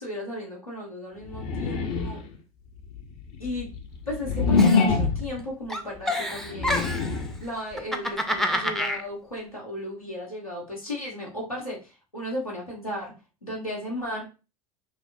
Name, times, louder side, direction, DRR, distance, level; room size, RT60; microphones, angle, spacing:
voice 1, 0.0-2.2 3.4-3.7 4.1-7.0 7.4-13.1 13.4-14.2, left 1 dB, 90° left, -4 dB, 1.4 m, -35 dB
sound 1, 1.3-2.4 3.0-5.4 6.3-7.4, left 4 dB, 45° left, 0.6 m, -24 dB
Giggle, 4.6-5.4 5.7-7.2 7.7-9.0, left 1 dB, ahead, 0.4 m, -28 dB
5.6 x 2.0 x 2.6 m, 0.32 s
figure-of-eight pair, 75°, 18 cm